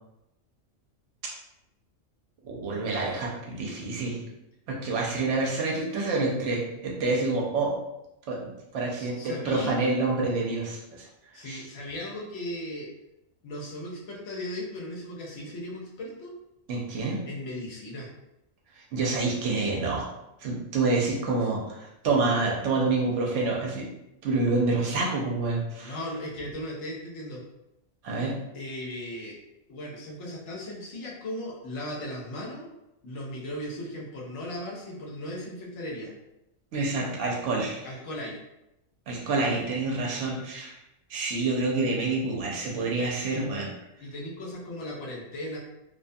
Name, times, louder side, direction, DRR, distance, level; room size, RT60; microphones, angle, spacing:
voice 1, 2.4-4.2 4.7-7.7 8.3-11.1 11.3-11.6 16.7-17.3 18.7-20.0 20.4-23.9 24.2-25.9 28.0-28.3 36.7-37.9 39.1-40.8 41.1-43.7, right 3 dB, 70° right, -2 dB, 0.9 m, -27 dB
voice 2, 9.0-9.8 11.3-12.9 13.4-16.3 17.3-18.1 25.8-27.4 28.5-29.4 29.7-32.7 33.0-36.1 37.8-38.4 44.0-45.6, left 1 dB, 65° left, -3 dB, 1.0 m, -37 dB
2.5 x 2.2 x 2.6 m, 0.88 s
omnidirectional pair, 1.3 m